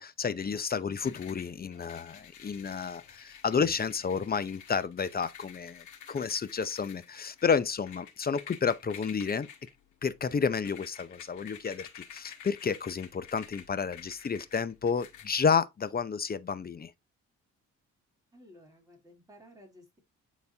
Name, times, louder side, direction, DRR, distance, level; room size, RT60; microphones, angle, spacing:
voice 1, 0.0-9.5 10.0-16.9, left 6 dB, 30° left, 0.7 m, -31 dB
sound 1, 1.0-15.3, left 8 dB, 80° left, 1.7 m, -50 dB
voice 2, 18.3-20.0, equal, 10° right, 3.3 m, -55 dB
9.4 x 4.1 x 2.8 m
cardioid pair, 90°, 30 cm